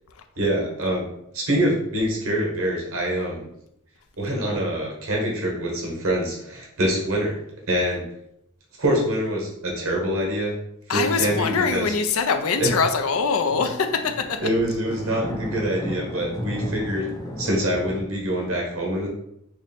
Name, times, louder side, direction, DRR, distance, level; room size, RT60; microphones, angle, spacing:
voice 1, 0.4-1.1 1.3-3.5 4.2-7.4 7.7-8.0 8.8-10.5 10.9-11.9 12.6-12.7 14.4-17.1 17.4-19.1, right 1 dB, 75° right, -1 dB, 1.2 m, -25 dB
voice 2, 10.9-14.4, left 5 dB, 80° left, 7 dB, 0.5 m, -23 dB
sound 1, 12.1-18.0, left 1 dB, 20° left, 0.4 m, -34 dB
3.1 x 2.7 x 4.2 m, 0.77 s
head